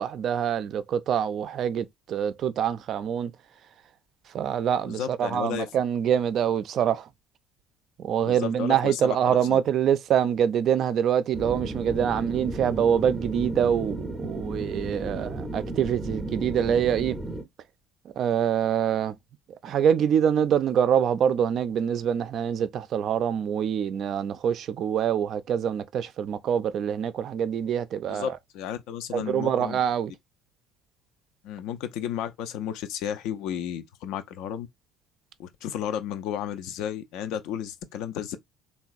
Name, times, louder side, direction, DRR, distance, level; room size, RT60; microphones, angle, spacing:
voice 1, 0.0-3.3 4.3-7.1 8.0-17.2 18.2-19.2 19.6-28.4 29.1-30.1, right 8 dB, 50° right, 0.3 m, -25 dB
voice 2, 4.9-5.7 8.2-9.6 28.1-29.8 31.4-34.7 35.4-38.4, left 9 dB, 60° left, 0.3 m, -33 dB
sound 1, 11.3-17.4, right 1 dB, 10° right, 0.6 m, -34 dB
2.9 x 2.2 x 2.5 m
figure-of-eight pair, 55°, 0 cm